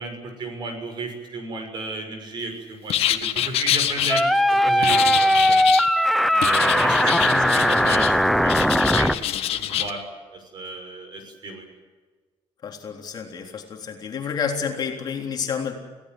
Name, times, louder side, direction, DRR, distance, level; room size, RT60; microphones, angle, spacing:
voice 1, 0.0-4.3 4.6-5.6 6.3-9.1 9.5-10.0 10.3-11.7, right 2 dB, 45° right, 6 dB, 6.3 m, -33 dB
sound 1, 2.9-4.2 4.8-5.9 6.4-8.1 8.5-9.9, left 12 dB, 65° left, 1.6 m, -25 dB
sound 2, 4.1-9.1, equal, ahead, 0.7 m, -19 dB
voice 2, 7.2-7.6 12.6-15.8, left 6 dB, 40° left, 2 dB, 3.6 m, -30 dB
29.0 x 17.5 x 7.7 m, 1.4 s
cardioid pair, 160°, 11 cm